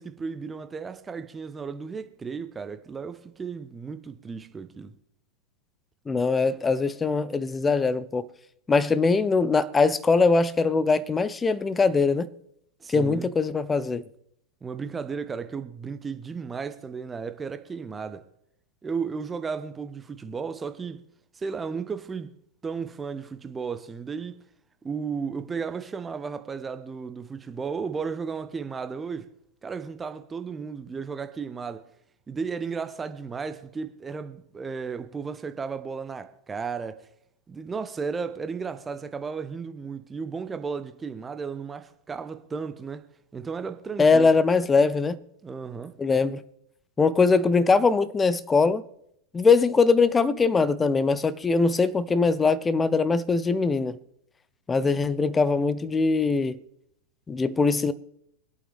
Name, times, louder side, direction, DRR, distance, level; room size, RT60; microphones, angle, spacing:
voice 1, 0.0-4.9 12.8-13.3 14.6-18.3 18.8-21.0 21.3-22.3 22.6-24.4 24.8-29.3 29.6-31.9 32.3-37.1 37.5-43.1 43.3-44.3 45.4-45.9, right 5 dB, 15° right, 0.9 m, -34 dB
voice 2, 6.1-8.2 8.7-12.3 12.9-14.0 44.0-45.2 46.0-46.4 47.0-48.8 49.3-54.0 54.7-56.6 57.3-57.9, left 4 dB, 15° left, 0.7 m, -22 dB
24.5 x 8.7 x 3.4 m
figure-of-eight pair, 90°, 0 cm